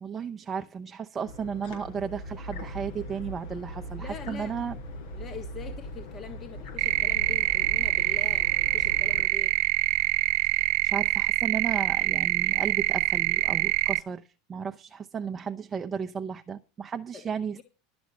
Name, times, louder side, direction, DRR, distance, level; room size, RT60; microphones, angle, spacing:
voice 1, 0.0-4.8 10.4-10.6 10.8-17.6, right 6 dB, 25° right, 0.7 m, -34 dB
sound 1, 1.2-9.2, equal, 75° left, 5.3 m, -40 dB
voice 2, 4.0-4.5 5.1-9.5 17.1-17.2 17.6-17.7, left 5 dB, 35° left, 1.5 m, -43 dB
sound 2, 6.8-14.0, right 19 dB, 60° right, 0.6 m, -25 dB
12.5 x 7.1 x 6.3 m
hypercardioid pair, 105°, 0 cm